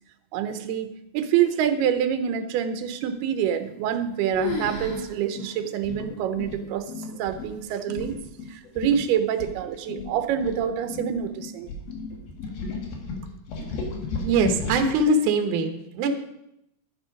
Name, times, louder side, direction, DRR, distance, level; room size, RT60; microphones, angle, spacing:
voice 1, 0.3-0.9 1.1-8.2 8.5-11.7, right 9 dB, 85° right, 8 dB, 2.7 m, -26 dB
sound 1, 3.6-4.1 4.4-5.1 5.4-5.5 6.2-6.3 7.0-7.4, left 5 dB, 40° left, 1.9 m, -33 dB
sound 2, 4.3-4.9 5.8-6.7 7.3-7.5 8.0-8.2 8.5-8.6 8.8-9.0 9.4-11.2 11.7-15.0, left 3 dB, 80° left, 3.8 m, -34 dB
sound 3, 4.8-12.5, left 6 dB, 60° left, 1.8 m, -39 dB
voice 2, 14.2-16.1, right 2 dB, 65° right, 5 dB, 2.2 m, -22 dB
12.0 x 9.0 x 5.2 m, 0.83 s
omnidirectional pair, 4.5 m